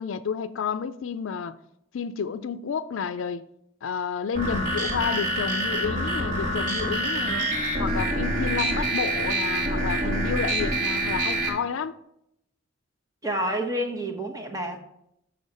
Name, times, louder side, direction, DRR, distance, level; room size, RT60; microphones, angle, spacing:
voice 1, 0.0-1.6 1.9-3.4 3.8-7.5 7.8-11.9, left 6 dB, 80° left, 0.4 m, -30 dB
sound 1, 4.3-11.5, right 1 dB, 40° right, 2.1 m, -26 dB
voice 2, 13.2-14.8, right 1 dB, 15° right, 1.2 m, -29 dB
6.9 x 6.4 x 5.5 m
head